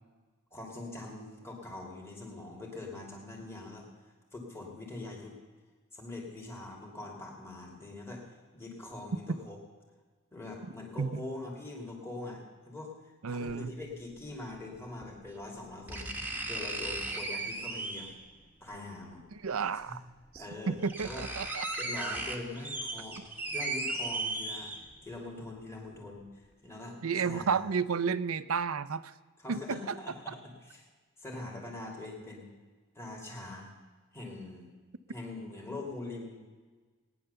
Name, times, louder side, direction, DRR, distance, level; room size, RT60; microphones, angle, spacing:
voice 1, 0.5-3.9 4.3-5.4 5.9-8.2 8.5-9.6 10.3-16.1 16.5-18.1 18.6-19.2 19.9-20.0 20.4-20.8 21.0-21.3 21.8-23.2 23.5-24.7 25.0-27.7 29.4-30.8 31.2-32.5 32.9-33.7 34.1-34.7 35.1-36.4, left 2 dB, 10° left, -1 dB, 2.7 m, -43 dB
voice 2, 13.2-13.7 19.4-20.0 20.3-21.6 27.0-29.1 29.5-30.0, right 5 dB, 75° right, 15 dB, 0.6 m, -32 dB
sound 1, 13.5-13.6 15.0-15.1 15.9-18.3 19.6-19.7 20.4-20.5 20.7-25.1 25.6-25.7, right 2 dB, 10° right, 1.4 m, -36 dB
18.5 x 10.0 x 6.9 m, 1.4 s
head